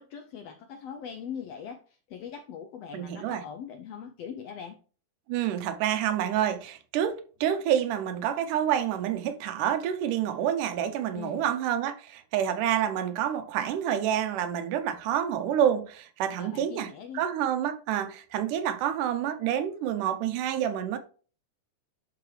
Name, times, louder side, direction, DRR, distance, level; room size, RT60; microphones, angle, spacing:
voice 1, 0.0-4.8 11.1-11.5 16.4-17.2, left 7 dB, 80° left, 1.4 m, -41 dB
voice 2, 2.9-3.4 5.3-21.0, right 10 dB, 90° right, 2.4 m, -28 dB
11.0 x 4.8 x 3.3 m
omnidirectional pair, 3.6 m